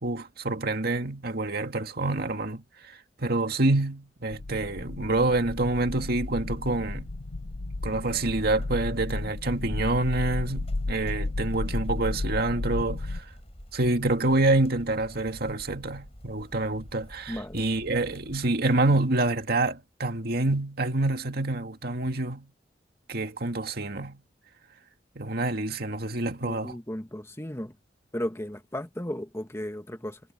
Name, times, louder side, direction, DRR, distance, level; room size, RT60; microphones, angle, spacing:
voice 1, 0.0-2.6 3.2-7.1 7.8-13.2 13.7-22.5 23.1-24.2 25.2-26.7, right 2 dB, 60° right, 2.1 m, -27 dB
sound 1, 4.3-13.2, left 2 dB, 90° left, 0.8 m, -33 dB
sound 2, 5.5-18.5, equal, 35° left, 5.7 m, -48 dB
voice 2, 17.3-17.7 26.4-27.8 28.1-30.2, equal, 15° left, 1.6 m, -35 dB
head